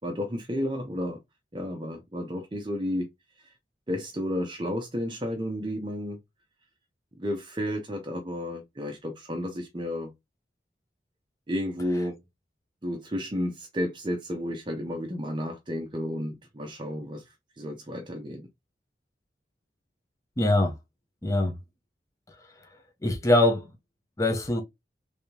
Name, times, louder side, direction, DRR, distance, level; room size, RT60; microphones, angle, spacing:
voice 1, 0.0-1.2 1.5-3.1 3.4-3.5 3.9-6.2 7.1-10.1 11.5-12.2 12.8-17.2 17.6-18.5, equal, 25° right, 0.7 m, -32 dB
voice 2, 20.4-20.7 21.2-21.5 23.0-23.6 24.2-24.6, left 2 dB, 20° left, 0.7 m, -22 dB
3.5 x 3.4 x 2.8 m
head